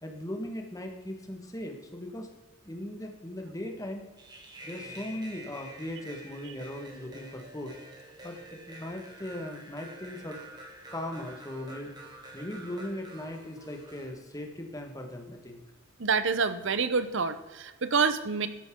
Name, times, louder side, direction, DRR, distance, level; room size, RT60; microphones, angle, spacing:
voice 1, 0.0-2.3 2.6-4.1 4.6-7.7 8.2-10.4 10.9-11.9 12.3-15.6, left 1 dB, 15° left, 3 dB, 1.5 m, -38 dB
sound 1, 4.2-14.1, right 1 dB, 20° right, 1.9 m, -48 dB
voice 2, 16.0-18.5, right 5 dB, 60° right, 11 dB, 0.8 m, -27 dB
13.0 x 11.0 x 3.8 m, 1.2 s
head